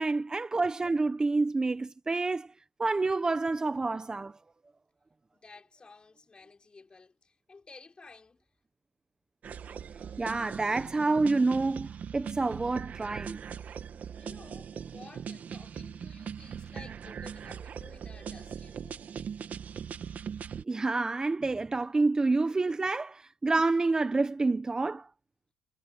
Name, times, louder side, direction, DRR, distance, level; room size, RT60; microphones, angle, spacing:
voice 1, 0.0-2.5 2.8-4.3 10.2-13.4 20.7-25.1, right 3 dB, 20° right, 1.1 m, -28 dB
voice 2, 5.3-8.4 14.1-19.1, left 4 dB, 25° left, 5.7 m, -53 dB
sound 1, 9.4-20.6, right 7 dB, 50° right, 1.9 m, -40 dB
cardioid pair, 85°, 3 cm